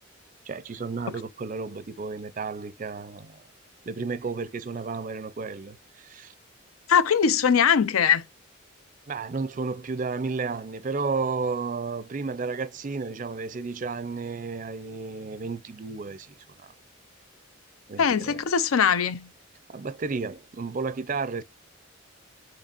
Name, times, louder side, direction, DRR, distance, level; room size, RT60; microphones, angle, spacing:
voice 1, 0.5-3.4 3.9-6.3 9.1-16.7 17.9-18.4 19.7-21.4, right 4 dB, 40° right, 0.4 m, -32 dB
voice 2, 6.9-8.2 18.0-19.3, left 7 dB, 85° left, 0.5 m, -21 dB
6.6 x 3.2 x 2.4 m
head